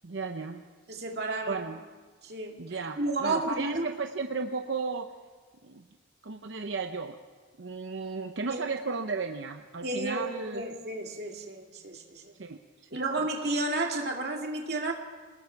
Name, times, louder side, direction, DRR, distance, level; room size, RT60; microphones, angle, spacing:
voice 1, 0.0-0.6 1.5-1.8 2.6-5.1 5.6-5.9 6.2-7.2 7.6-10.6 12.4-12.9, right 4 dB, 85° right, 6 dB, 0.8 m, -34 dB
voice 2, 0.9-1.7 2.2-3.9 8.4-8.6 9.8-12.4 12.9-14.9, right 2 dB, 55° right, 1 dB, 2.5 m, -32 dB
27.5 x 20.0 x 4.7 m, 1.4 s
head